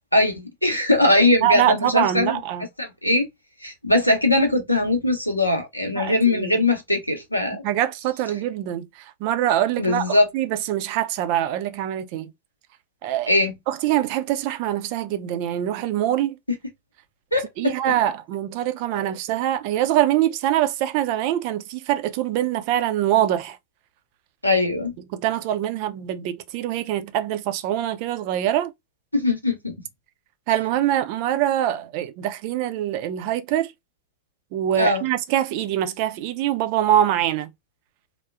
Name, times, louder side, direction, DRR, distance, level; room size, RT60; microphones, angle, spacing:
voice 1, 0.1-2.4 2.8-3.3 3.6-7.6 9.8-10.3 13.3-13.5 17.3-17.7 24.4-24.9 29.1-29.7 34.8-35.0, left 2 dB, 85° left, 0.8 m, -20 dB
voice 2, 1.4-2.7 5.9-6.6 7.6-12.3 13.0-13.3 13.7-16.4 17.6-23.6 25.1-28.7 30.5-33.7 34.5-37.5, right 12 dB, 45° right, 0.5 m, -24 dB
3.6 x 2.0 x 2.3 m
figure-of-eight pair, 90°, 0 cm